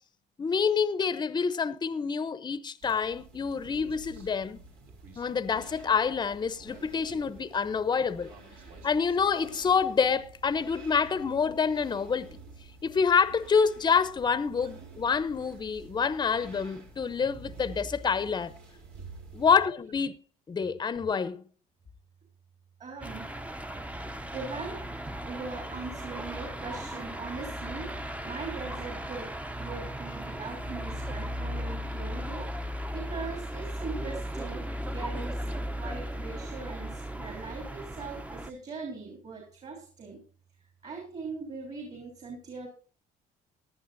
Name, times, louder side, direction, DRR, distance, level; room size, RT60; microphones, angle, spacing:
voice 1, 0.4-4.6 5.2-8.3 8.8-12.3 12.8-18.5 19.3-20.2 20.5-21.4, left 6 dB, 25° left, 0.7 m, -27 dB
sound 1, 2.8-19.6, right 3 dB, 85° right, 4.5 m, -49 dB
Human voice, 3.6-9.6, right 4 dB, 65° right, 3.7 m, -54 dB
voice 2, 22.8-23.4 24.3-24.8 25.3-29.3 29.6-40.2 40.8-42.7, right 4 dB, 45° right, 3.4 m, -41 dB
sound 2, 23.0-38.5, equal, 10° right, 0.7 m, -36 dB
18.5 x 11.0 x 2.6 m
cardioid pair, 110°, 17 cm